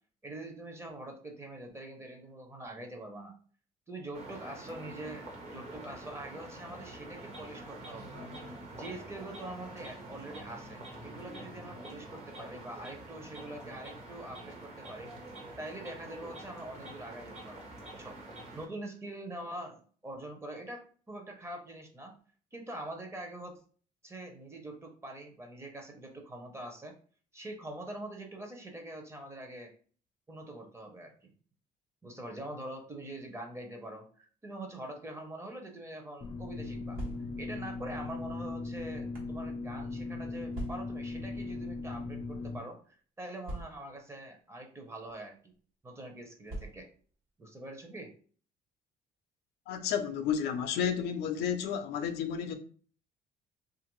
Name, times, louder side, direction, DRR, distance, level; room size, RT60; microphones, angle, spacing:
voice 1, 0.2-3.3 3.9-8.2 8.7-15.1 15.6-22.1 22.5-23.6 24.0-26.9 27.3-29.7 30.3-31.3 32.0-37.0 37.4-45.5 45.8-46.9 47.4-48.1, right 1 dB, 15° right, 0.7 m, -44 dB
sound 1, 4.1-18.7, right 1 dB, 40° right, 0.9 m, -46 dB
sound 2, 36.2-42.6, left 3 dB, 30° left, 0.5 m, -38 dB
sound 3, 36.9-37.6 38.4-39.4 40.5-41.1 42.0-42.2 42.4-42.5 43.4-44.1 45.0-45.2 46.5-47.1, right 1 dB, 65° right, 1.2 m, -42 dB
voice 2, 49.7-52.5, left 8 dB, 80° left, 0.5 m, -31 dB
2.8 x 2.5 x 3.0 m
cardioid pair, 110°, 17 cm